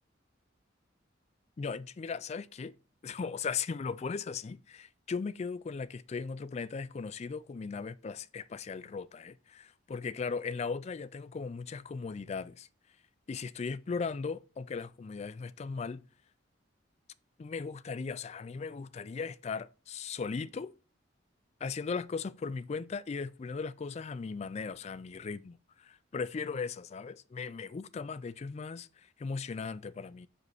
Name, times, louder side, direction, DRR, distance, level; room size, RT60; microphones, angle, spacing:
voice 1, 1.6-2.7 3.0-12.7 13.3-16.0 17.4-20.7 21.6-25.6 25.8-28.9 29.2-30.3, left 5 dB, 35° left, 0.3 m, -37 dB
5.3 x 5.2 x 6.3 m
head